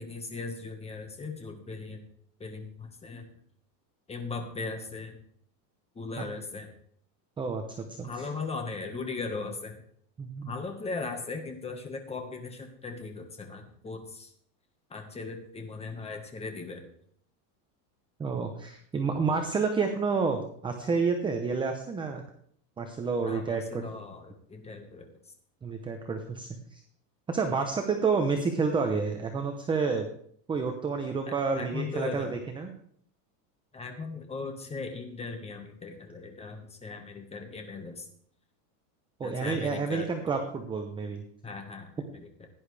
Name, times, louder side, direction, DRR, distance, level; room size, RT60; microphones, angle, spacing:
voice 1, 0.0-2.0 2.4-3.3 4.1-5.2 5.9-6.7 8.0-9.8 10.4-14.3 14.9-16.9 23.2-25.1 31.3-32.4 33.7-38.1 39.2-40.1 41.4-42.3, left 4 dB, 10° left, 5 dB, 1.4 m, -38 dB
voice 2, 7.4-8.3 10.2-10.5 18.2-22.2 22.8-23.9 25.6-26.8 27.3-30.1 30.5-32.7 39.2-41.2, right 4 dB, 10° right, 5 dB, 0.7 m, -29 dB
16.5 x 10.5 x 3.4 m, 0.64 s
supercardioid pair, 155°, 49 cm